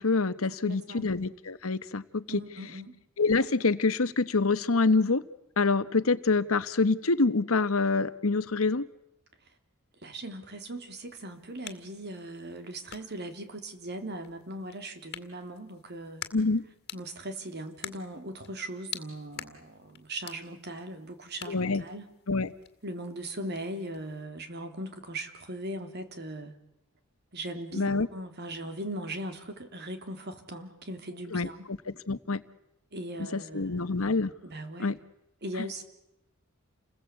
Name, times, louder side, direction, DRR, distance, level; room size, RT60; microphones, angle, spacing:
voice 1, 0.0-2.4 3.2-5.2 5.6-8.9 16.3-16.6 21.5-21.8 22.3-22.5 27.7-28.1 31.3-32.4 33.3-34.3 34.8-35.0, left 3 dB, 85° left, 14 dB, 1.1 m, -26 dB
voice 2, 0.6-1.1 2.3-3.0 10.0-16.2 16.9-22.0 22.8-26.5 27.3-31.7 32.9-34.0 34.4-34.9 35.4-35.8, right 1 dB, 50° right, 7 dB, 3.2 m, -39 dB
sound 1, 11.0-24.2, left 10 dB, 50° left, 2.1 m, -48 dB
29.5 x 20.5 x 8.3 m, 0.86 s
head